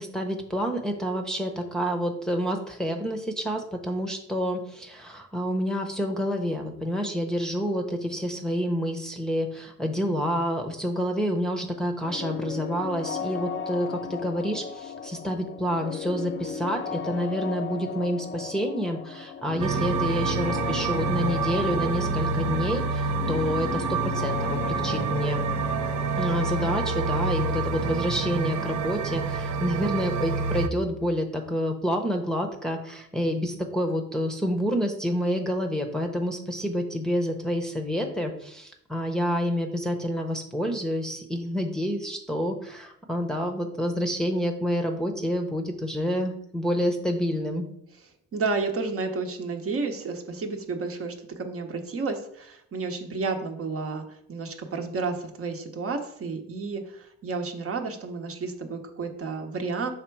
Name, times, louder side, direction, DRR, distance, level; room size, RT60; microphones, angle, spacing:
voice 1, 0.0-25.4 26.2-47.6, equal, ahead, 2 dB, 0.8 m, -28 dB
sound 1, 12.0-29.7, left 7 dB, 40° left, 0.4 m, -36 dB
sound 2, 19.6-30.7, right 4 dB, 70° right, 0.5 m, -27 dB
voice 2, 48.3-59.9, right 4 dB, 50° right, 4 dB, 1.0 m, -31 dB
5.9 x 3.5 x 4.6 m, 0.73 s
cardioid pair, 90°, 30 cm